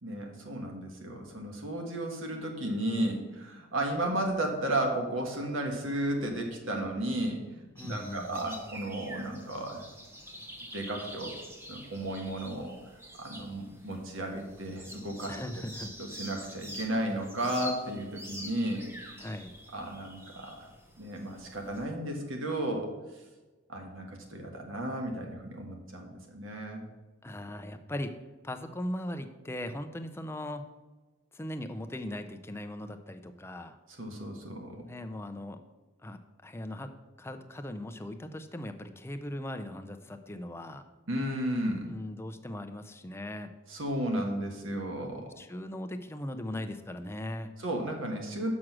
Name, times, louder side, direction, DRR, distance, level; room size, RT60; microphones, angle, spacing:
voice 1, 0.0-9.8 10.7-11.4 11.7-12.7 13.2-15.4 16.0-18.8 19.7-20.7 21.0-22.9 23.7-26.8 33.9-34.8 41.1-41.9 43.7-45.3 47.6-48.5, right 1 dB, 70° right, 3 dB, 1.5 m, -34 dB
voice 2, 7.8-8.4 15.3-16.0 19.2-19.5 27.2-28.2 28.4-30.6 31.3-33.8 34.7-35.6 36.0-36.9 37.2-40.8 41.9-43.5 45.1-47.5, left 1 dB, 10° left, 7 dB, 0.5 m, -39 dB
sound 1, 7.8-21.8, equal, 10° right, 0.8 m, -46 dB
6.2 x 6.2 x 6.1 m, 1.2 s
head